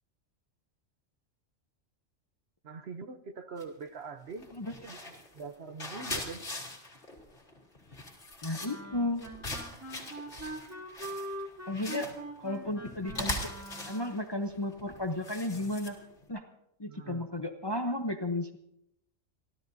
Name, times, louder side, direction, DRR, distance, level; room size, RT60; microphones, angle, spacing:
voice 1, 2.6-6.4 12.0-12.2 16.9-17.3, right 4 dB, 55° right, 9 dB, 1.0 m, -44 dB
sound 1, 3.6-3.9 4.3-16.3, left 1 dB, 45° left, 2.7 m, -41 dB
voice 2, 8.4-9.2 11.7-12.1 12.4-13.5 13.9-16.0 16.3-16.4 16.8-18.6, left 1 dB, 25° left, 6 dB, 0.7 m, -33 dB
Wind instrument woodwind instrument, 8.6-14.4, right 1 dB, 10° right, 1.5 m, -43 dB
28.0 x 13.0 x 2.7 m, 0.79 s
omnidirectional pair, 1.3 m